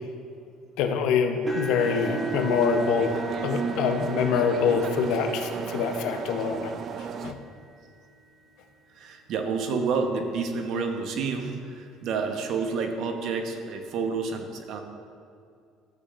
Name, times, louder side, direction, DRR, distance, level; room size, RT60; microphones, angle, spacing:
voice 1, 0.8-6.7 7.0-7.4, left 6 dB, 75° left, 5 dB, 0.8 m, -25 dB
sound 1, 1.5-9.5 10.1-10.4 10.8-10.9 12.3-12.4, equal, 20° right, 1.7 m, -42 dB
sound 2, 1.8-7.3, right 5 dB, 45° right, 0.4 m, -32 dB
voice 2, 8.9-14.8, right 5 dB, 60° right, 5 dB, 1.0 m, -29 dB
13.5 x 8.4 x 2.5 m, 2.4 s
cardioid pair, 120°, 0 cm